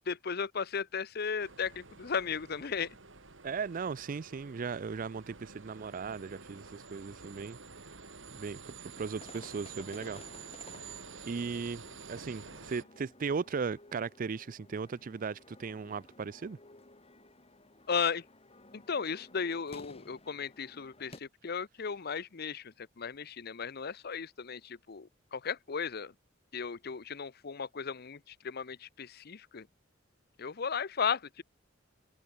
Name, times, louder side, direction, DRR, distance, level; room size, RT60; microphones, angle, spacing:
voice 1, 0.1-2.9 17.9-18.2 18.7-26.1 26.5-29.7 30.4-31.4, left 6 dB, 55° left, 0.8 m, -35 dB
sound 1, 1.4-12.8, right 5 dB, 85° right, 2.8 m, -49 dB
voice 2, 3.4-7.6 8.3-10.2 11.2-16.6, right 5 dB, 45° right, 0.4 m, -37 dB
sound 2, 8.9-21.2, left 2 dB, 30° left, 4.5 m, -55 dB
head